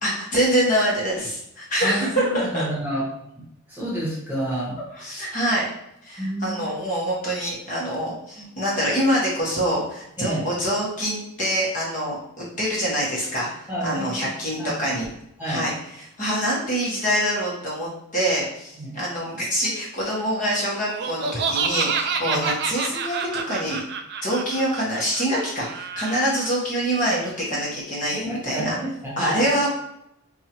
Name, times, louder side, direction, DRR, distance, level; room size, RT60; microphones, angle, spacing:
voice 1, 0.0-2.6 4.9-5.7 6.0-13.5 13.8-15.1 15.5-15.7 16.2-23.8 24.2-28.7 29.2-29.7, equal, 40° left, -5 dB, 1.1 m, -25 dB
voice 2, 2.3-3.0 3.7-4.8 6.2-6.6 10.2-10.4 13.7-14.2 14.6-14.7 15.4-15.7 18.7-19.0 22.2-22.5 28.1-29.4, right 1 dB, 10° right, -7 dB, 1.2 m, -29 dB
Laughter, 20.9-26.5, right 5 dB, 55° right, 0.3 m, -28 dB
4.5 x 2.4 x 2.9 m, 0.78 s
head